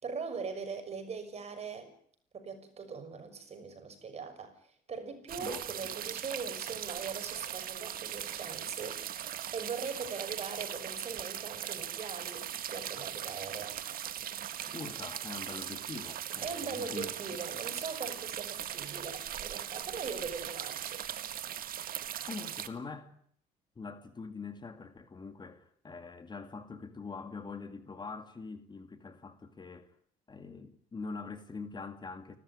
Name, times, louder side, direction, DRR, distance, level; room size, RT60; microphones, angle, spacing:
voice 1, 0.0-1.9 2.3-13.8 16.4-21.0, right 5 dB, 40° right, 6.3 m, -41 dB
sound 1, 5.3-22.7, right 10 dB, 60° right, 1.8 m, -39 dB
voice 2, 5.4-5.9 14.7-17.1 22.3-23.2 23.8-29.9 30.3-32.4, left 4 dB, 25° left, 2.2 m, -44 dB
29.5 x 13.5 x 9.9 m
cardioid pair, 110°, 17 cm